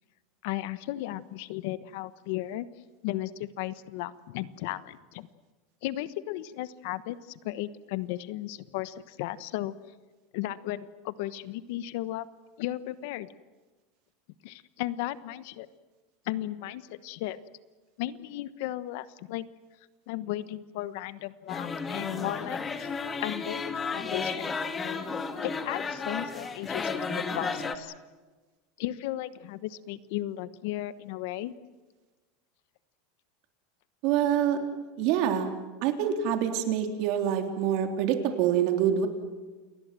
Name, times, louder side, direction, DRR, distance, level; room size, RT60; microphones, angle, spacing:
voice 1, 0.4-2.7 3.0-5.3 5.8-7.2 7.4-9.7 10.3-12.3 12.6-13.3 14.4-15.7 16.3-17.4 18.0-19.5 20.1-22.9 23.2-24.5 25.4-27.9 28.8-31.6, left 15 dB, 65° left, 15 dB, 1.1 m, -35 dB
sound 1, 21.5-27.8, left 4 dB, 15° left, 1.8 m, -33 dB
voice 2, 34.0-34.6 35.0-35.5 35.8-39.1, right 9 dB, 55° right, 5 dB, 3.7 m, -26 dB
29.0 x 20.0 x 7.7 m, 1.2 s
supercardioid pair, 150°, 0 cm